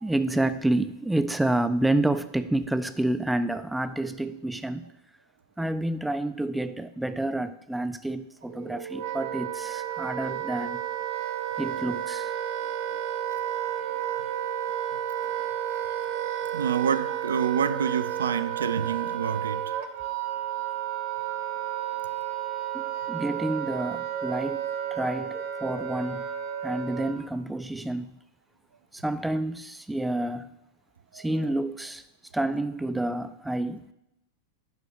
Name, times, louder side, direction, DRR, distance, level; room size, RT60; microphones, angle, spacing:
voice 1, 0.0-4.9 5.6-10.8 11.6-12.3 22.7-24.6 24.9-26.3 26.6-28.2 28.9-30.5 31.1-32.0 32.3-33.9, right 1 dB, 5° right, 0.4 m, -29 dB
Wind instrument woodwind instrument, 8.5-27.3, right 10 dB, 50° right, 0.9 m, -32 dB
voice 2, 12.6-13.4 16.5-20.0 21.7-21.9 31.1-31.3, right 7 dB, 70° right, 0.4 m, -29 dB
10.0 x 3.8 x 6.8 m
figure-of-eight pair, 90°, 0 cm